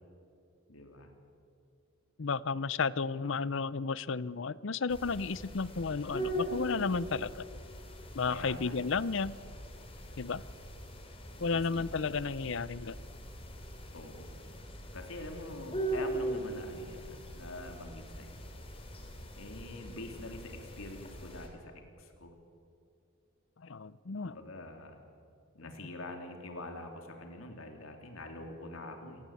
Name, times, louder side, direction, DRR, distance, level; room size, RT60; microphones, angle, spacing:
voice 1, 0.7-1.1 8.3-8.8 11.3-11.9 13.9-14.3 14.9-18.4 19.4-21.7 22.0-22.3 24.2-25.0 25.5-29.2, left 2 dB, 75° left, 4 dB, 3.5 m, -45 dB
voice 2, 2.2-7.5 8.1-9.4 10.2-10.4 11.4-13.0 23.6-24.4, left 4 dB, 60° left, 19 dB, 0.6 m, -33 dB
sound 1, 4.9-21.5, right 1 dB, 25° left, 3.3 m, -41 dB
29.0 x 18.5 x 8.5 m, 2.4 s
head